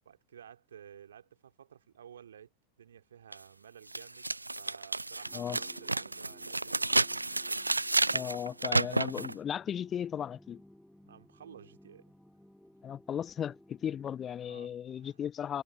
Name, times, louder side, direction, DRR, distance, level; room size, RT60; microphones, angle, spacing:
voice 1, 0.0-2.5 2.8-7.0 11.0-12.1 14.4-15.2, right 9 dB, 65° right, 2.7 m, -53 dB
sound 1, 3.3-3.4 3.9-9.3, right 2 dB, 85° right, 0.4 m, -31 dB
sound 2, 5.2-14.3, left 1 dB, ahead, 4.2 m, -59 dB
voice 2, 8.1-10.6 12.8-15.6, left 9 dB, 25° left, 1.0 m, -36 dB
figure-of-eight pair, 90°, 0 cm